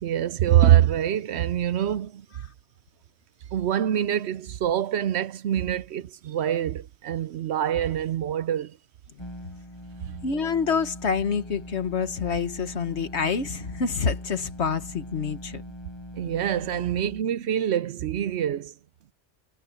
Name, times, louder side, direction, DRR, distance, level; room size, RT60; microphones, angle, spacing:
voice 1, 0.0-2.3 3.5-8.8 16.1-18.7, right 11 dB, 65° right, 0.8 m, -24 dB
sound 1, 9.2-17.2, equal, 20° left, 7.2 m, -41 dB
voice 2, 10.2-15.6, left 5 dB, 60° left, 1.6 m, -27 dB
omnidirectional pair, 1.3 m